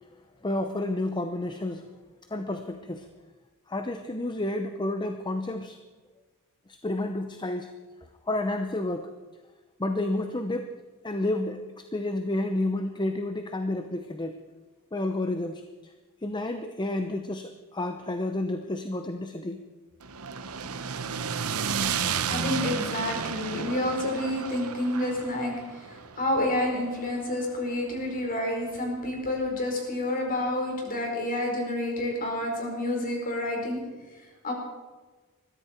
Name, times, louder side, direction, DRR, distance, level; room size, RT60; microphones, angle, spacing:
voice 1, 0.4-1.9 2.3-3.1 3.7-5.8 6.8-7.7 8.3-9.1 9.8-10.7 11.0-14.4 14.9-15.9 16.2-19.6, left 1 dB, 20° left, 7 dB, 0.7 m, -30 dB
sound 1, 20.0-28.2, right 6 dB, 75° right, 0.9 m, -33 dB
voice 2, 22.3-25.9 26.2-33.8 34.4-34.5, left 1 dB, 40° left, 0 dB, 4.6 m, -29 dB
21.0 x 14.0 x 4.5 m, 1.3 s
head